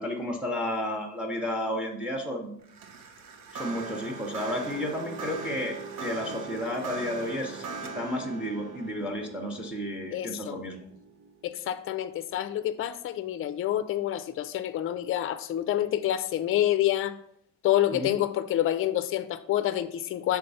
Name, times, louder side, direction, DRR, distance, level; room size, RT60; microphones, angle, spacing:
voice 1, 0.0-2.5 3.5-7.7 7.9-10.9 17.9-18.1, left 1 dB, 5° right, 0.7 m, -32 dB
sound 1, 2.6-12.0, right 4 dB, 85° right, 0.9 m, -40 dB
voice 2, 10.1-10.6 11.4-17.1 17.6-20.4, left 12 dB, 40° left, 0.4 m, -27 dB
5.8 x 3.4 x 5.4 m
cardioid pair, 165°, 33 cm